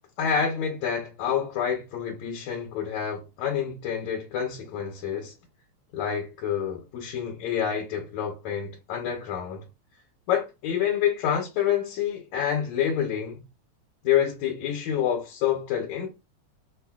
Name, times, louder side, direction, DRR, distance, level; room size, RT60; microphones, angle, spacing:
voice 1, 0.2-5.3 5.9-9.6 10.3-13.4 14.0-16.1, left 8 dB, 75° left, 1.9 m, -28 dB
6.0 x 2.1 x 2.3 m
omnidirectional pair, 3.3 m